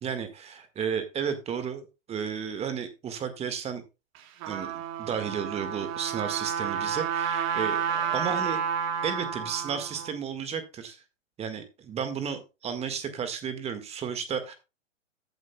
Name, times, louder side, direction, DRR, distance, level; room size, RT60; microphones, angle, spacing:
voice 1, 0.0-3.8 4.5-8.6 9.0-11.0 11.4-14.5, right 7 dB, 15° right, 9 dB, 1.7 m, -33 dB
Trumpet, 4.1-10.1, right 7 dB, 35° right, 3.8 m, -30 dB
14.0 x 7.9 x 2.2 m, 0.27 s
figure-of-eight pair, 115°, 37 cm